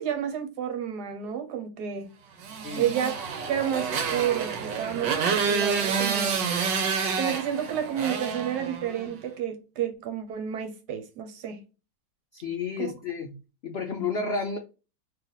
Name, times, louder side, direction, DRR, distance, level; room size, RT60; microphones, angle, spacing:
voice 1, 0.0-2.1 2.8-6.4 7.2-11.6 12.8-12.9, right 9 dB, 70° right, 1.3 m, -30 dB
Motorcycle, 2.4-9.1, right 6 dB, 90° right, 1.4 m, -28 dB
voice 2, 12.3-13.3 13.6-14.6, left 4 dB, 85° left, 0.5 m, -31 dB
3.3 x 2.8 x 3.9 m
omnidirectional pair, 1.9 m